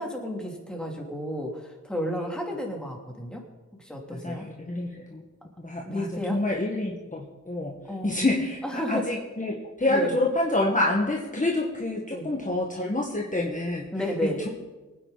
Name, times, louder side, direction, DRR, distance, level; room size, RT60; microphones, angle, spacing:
voice 1, 0.0-3.4 3.8-4.5 5.8-6.4 7.9-8.4 8.6-9.0 9.9-10.1 12.1-12.3 13.9-14.4, equal, 5° left, -1 dB, 3.3 m, -32 dB
voice 2, 4.1-5.2 5.6-7.7 8.0-13.8 14.2-14.5, left 2 dB, 25° left, -1 dB, 1.8 m, -27 dB
23.5 x 9.8 x 4.2 m, 1.2 s
wide cardioid pair, 75°, 30 cm